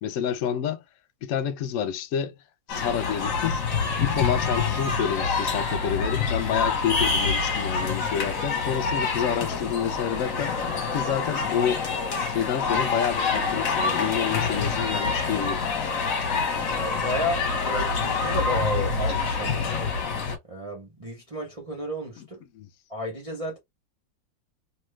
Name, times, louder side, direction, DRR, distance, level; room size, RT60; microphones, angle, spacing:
voice 1, 0.0-0.8 1.2-2.3 2.7-3.6 4.0-10.6 10.9-11.8 12.3-15.6 22.2-22.3 22.5-22.7, left 8 dB, 70° left, 0.7 m, -29 dB
sound 1, 2.7-20.4, left 5 dB, 55° left, 1.2 m, -26 dB
voice 2, 16.7-19.9 20.5-22.4 22.9-23.6, equal, 55° right, 0.3 m, -32 dB
2.9 x 2.2 x 3.2 m
omnidirectional pair, 2.0 m